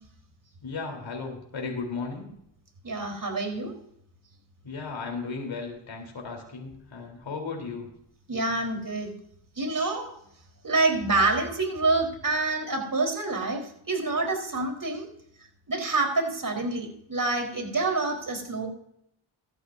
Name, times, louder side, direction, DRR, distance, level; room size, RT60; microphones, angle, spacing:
voice 1, 0.6-2.3 4.6-7.9, left 4 dB, 65° left, 1 dB, 3.7 m, -35 dB
voice 2, 2.8-3.7 8.3-9.1 9.6-10.1 10.6-15.1 15.7-18.7, right 3 dB, 40° right, 3 dB, 4.1 m, -27 dB
17.0 x 13.0 x 2.7 m, 0.73 s
cardioid pair, 45°, 49 cm